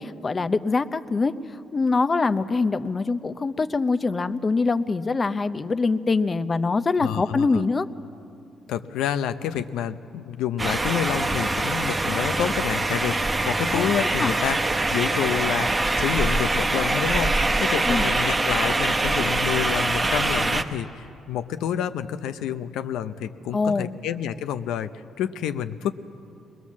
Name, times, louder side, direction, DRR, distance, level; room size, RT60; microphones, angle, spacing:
voice 1, 0.0-1.3 1.7-7.9 13.7-13.9 14.2-14.3 17.9-18.1 23.5-23.9, left 4 dB, 30° left, 12 dB, 0.7 m, -24 dB
voice 2, 7.0-7.7 8.7-14.6 14.9-24.9 25.2-25.9, left 9 dB, 90° left, 11 dB, 0.7 m, -28 dB
sound 1, 10.6-20.6, right 2 dB, 25° right, 1.1 m, -24 dB
21.5 x 21.0 x 7.3 m, 2.7 s
cardioid pair, 90°, 0 cm